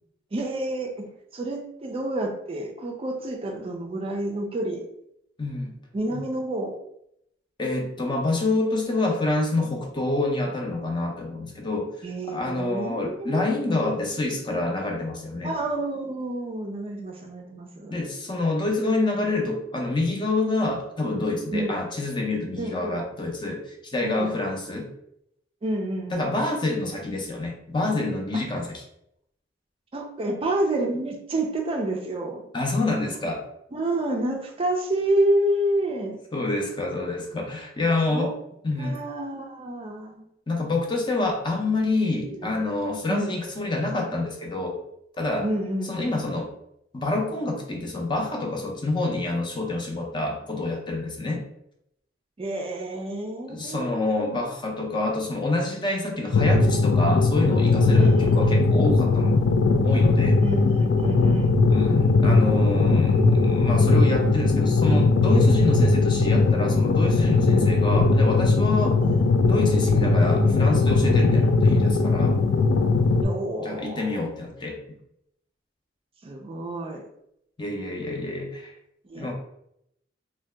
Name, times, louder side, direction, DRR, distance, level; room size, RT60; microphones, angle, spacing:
voice 1, 0.3-4.9 5.9-6.8 12.0-13.9 15.4-17.9 21.5-21.7 22.6-23.0 24.0-24.4 25.6-26.3 28.3-28.4 29.9-32.5 33.7-36.2 38.1-38.3 38.8-40.3 42.2-42.5 43.1-43.4 45.4-46.2 52.4-54.5 58.0-58.6 60.4-61.6 67.7-67.9 69.0-69.1 71.2-71.4 73.2-74.1 76.2-77.1 79.0-79.3, right 1 dB, 30° right, 2 dB, 0.4 m, -29 dB
voice 2, 5.4-5.7 7.6-11.9 12.3-15.5 17.9-24.9 26.1-28.7 32.5-33.4 36.3-38.3 38.6-39.0 40.5-44.8 45.2-45.5 45.9-46.5 46.9-51.4 53.5-59.3 59.8-60.4 61.7-69.0 69.4-72.4 73.6-74.8 77.6-78.7 79.2-79.3, left 2 dB, 25° left, 1 dB, 0.5 m, -27 dB
sound 1, 56.3-73.2, left 3 dB, 90° left, 0.4 m, -19 dB
2.7 x 2.2 x 3.3 m, 0.76 s
head